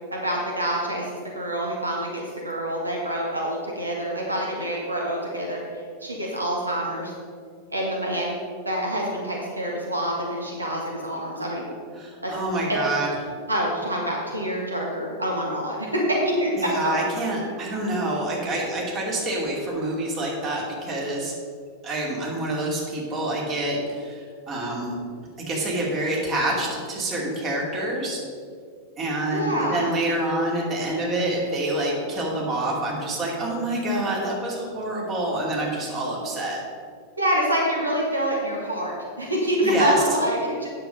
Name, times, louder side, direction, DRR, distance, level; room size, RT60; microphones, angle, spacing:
voice 1, 0.1-5.6 6.0-7.1 7.7-8.4 8.6-11.7 12.2-12.3 12.7-12.8 13.5-16.5 16.8-16.9 29.3-29.9 37.2-40.7, equal, 80° right, -2 dB, 1.5 m, -26 dB
voice 2, 12.0-13.1 16.6-21.3 21.8-24.9 25.4-28.2 29.0-36.6 39.6-39.9, right 1 dB, 30° right, -2 dB, 2.7 m, -27 dB
9.0 x 7.2 x 5.3 m, 2.1 s
figure-of-eight pair, 90°, 0 cm